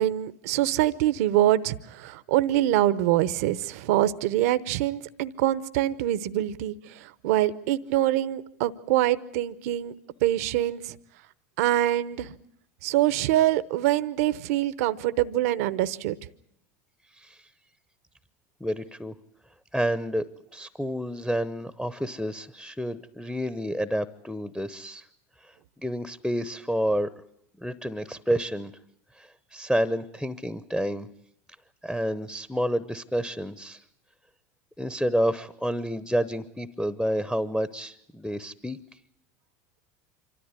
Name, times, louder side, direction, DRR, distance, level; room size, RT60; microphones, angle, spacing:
voice 1, 0.0-9.9 10.2-11.0 11.6-12.3 12.8-16.2, right 13 dB, 70° right, 15 dB, 0.8 m, -24 dB
voice 2, 18.6-19.1 19.7-20.2 20.5-25.0 25.4-25.5 25.8-27.1 27.6-28.7 29.2-31.1 31.8-33.8 34.8-38.8, equal, ahead, 15 dB, 0.8 m, -29 dB
26.0 x 13.5 x 9.7 m, 0.76 s
hypercardioid pair, 95°, 8 cm